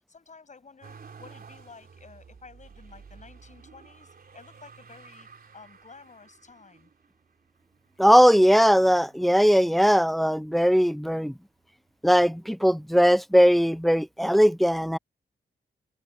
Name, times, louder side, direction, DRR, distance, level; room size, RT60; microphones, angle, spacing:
voice 1, 0.1-6.9, left 4 dB, 40° left, 6.8 m, -51 dB
Motor vehicle (road), 0.8-9.9 10.5-11.4 11.6-12.7 13.8-13.9, right 5 dB, 55° right, 3.5 m, -52 dB
voice 2, 8.0-11.3 12.0-15.0, equal, ahead, 0.4 m, -19 dB
wide cardioid pair, 115°, 19 cm